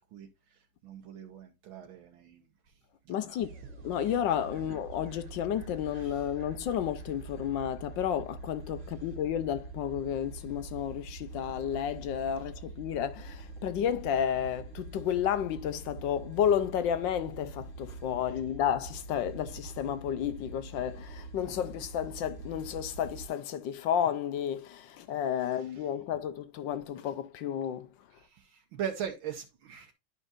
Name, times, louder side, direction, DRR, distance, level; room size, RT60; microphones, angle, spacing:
voice 1, 0.1-2.4 3.1-3.4 6.0-6.3 25.5-25.6 28.2-29.9, right 8 dB, 75° right, 1.7 m, -41 dB
voice 2, 3.1-3.5 3.8-27.9, left 9 dB, 70° left, 1.3 m, -32 dB
sound 1, 3.4-23.3, right 3 dB, 60° right, 2.1 m, -45 dB
11.0 x 5.4 x 2.5 m
omnidirectional pair, 2.3 m